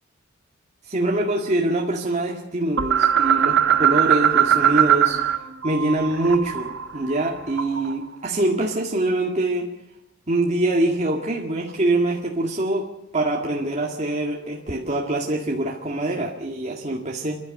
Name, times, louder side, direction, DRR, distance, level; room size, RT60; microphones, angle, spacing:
voice 1, 0.9-5.2 5.6-9.7 10.3-12.9 13.1-17.4, right 2 dB, 35° right, -2 dB, 2.1 m, -24 dB
sound 1, 2.8-5.4 5.6-7.9, right 9 dB, 60° right, 1.4 m, -20 dB
29.0 x 12.0 x 7.8 m, 0.88 s
head